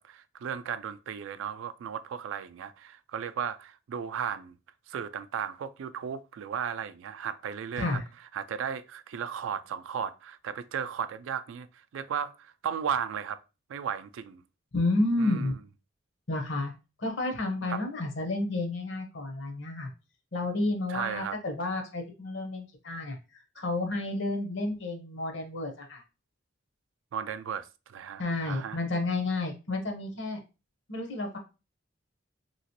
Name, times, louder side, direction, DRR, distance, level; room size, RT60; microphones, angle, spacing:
voice 1, 0.0-4.5 4.9-8.0 8.3-11.7 11.9-13.4 13.7-14.4 15.2-15.5 17.7-17.8 20.9-21.4 27.1-28.8, right 7 dB, 75° right, 0.3 m, -35 dB
voice 2, 14.7-15.5 16.3-16.7 17.0-19.9 20.3-23.2 23.5-26.0 28.2-30.4 30.9-31.4, left 2 dB, 65° left, 0.8 m, -31 dB
3.0 x 2.8 x 2.8 m
head